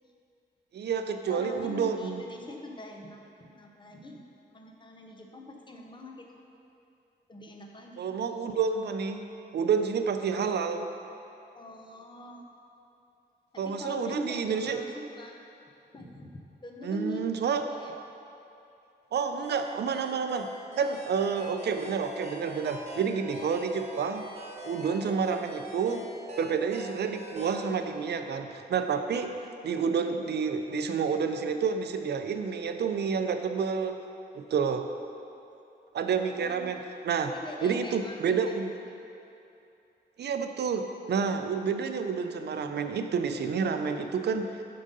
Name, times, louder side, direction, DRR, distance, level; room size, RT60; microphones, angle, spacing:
voice 1, 0.7-2.2 8.0-9.3 9.5-10.9 13.6-14.8 16.8-17.7 19.1-20.5 20.8-24.3 24.6-26.1 26.4-29.4 29.6-34.0 34.3-34.9 35.9-37.3 37.6-38.7 40.2-44.6, right 6 dB, 65° right, 7 dB, 0.4 m, -29 dB
voice 2, 1.3-4.2 4.5-6.2 7.3-8.1 11.5-12.4 13.6-15.3 15.9-16.3 16.6-17.9 36.3-36.6 37.3-38.9, left 1 dB, 25° left, 1 dB, 0.6 m, -42 dB
sound 1, 19.4-27.7, equal, 35° right, 1.0 m, -43 dB
7.4 x 3.8 x 5.3 m, 2.7 s
wide cardioid pair, 150°, 19 cm